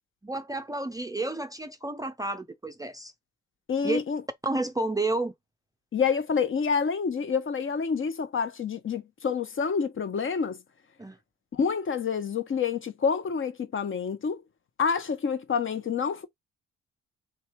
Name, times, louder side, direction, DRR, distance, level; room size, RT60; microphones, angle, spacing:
voice 1, 0.2-3.1 3.8-4.0 4.4-5.3 11.0-11.2, right 2 dB, 10° right, 0.5 m, -31 dB
voice 2, 3.7-4.2 5.9-10.6 11.5-14.4 14.8-16.3, left 6 dB, 40° left, 0.9 m, -28 dB
3.3 x 3.3 x 4.4 m
cardioid pair, 90°, 30 cm